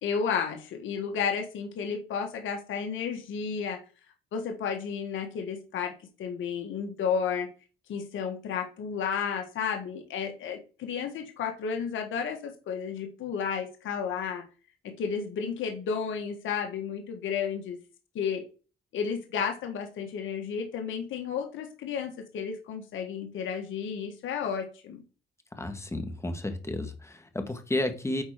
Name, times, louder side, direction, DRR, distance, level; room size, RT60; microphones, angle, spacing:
voice 1, 0.0-3.8 4.3-5.9 6.2-7.5 7.9-14.4 14.8-17.8 18.1-18.4 18.9-25.0, left 6 dB, 75° left, 1.5 m, -32 dB
voice 2, 25.6-28.2, left 1 dB, 15° left, 1.7 m, -32 dB
9.0 x 4.3 x 5.0 m
cardioid pair, 90°, 20 cm